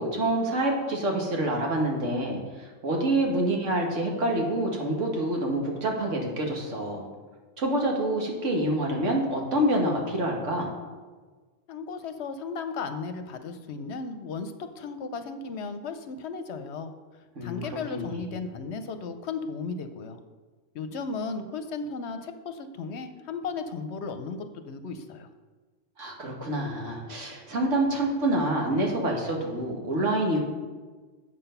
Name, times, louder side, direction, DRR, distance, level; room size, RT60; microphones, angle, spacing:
voice 1, 0.0-7.1 7.6-10.7 17.4-17.6 17.9-18.4 26.0-30.4, right 1 dB, 80° right, 0 dB, 1.8 m, -27 dB
voice 2, 11.7-16.9 17.4-20.2 20.7-25.3, left 4 dB, 70° left, 9 dB, 0.9 m, -35 dB
8.0 x 5.8 x 5.6 m, 1.4 s
omnidirectional pair, 1.2 m